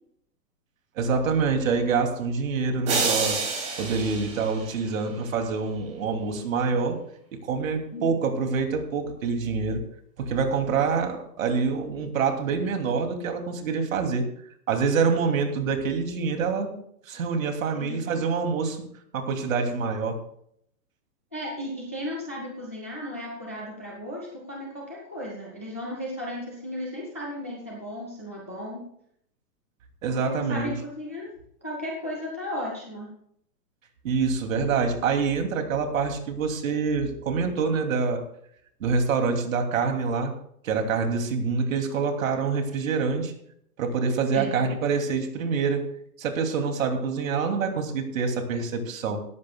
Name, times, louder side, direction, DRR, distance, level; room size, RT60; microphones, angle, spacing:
voice 1, 0.9-3.4 3.8-7.0 7.3-9.8 10.2-14.3 14.7-16.8 17.1-18.8 19.1-20.2 30.0-30.7 34.0-38.2 38.8-40.3 40.6-43.3 43.8-45.9 46.2-49.2, right 5 dB, 50° right, 5 dB, 3.0 m, -26 dB
sound 1, 2.9-5.2, right 4 dB, 15° right, 3.0 m, -29 dB
voice 2, 21.3-28.8 30.1-31.3 31.6-33.1 44.3-44.6, equal, 10° left, -3 dB, 0.5 m, -35 dB
18.0 x 15.0 x 2.4 m, 0.68 s
hypercardioid pair, 175°, 50 cm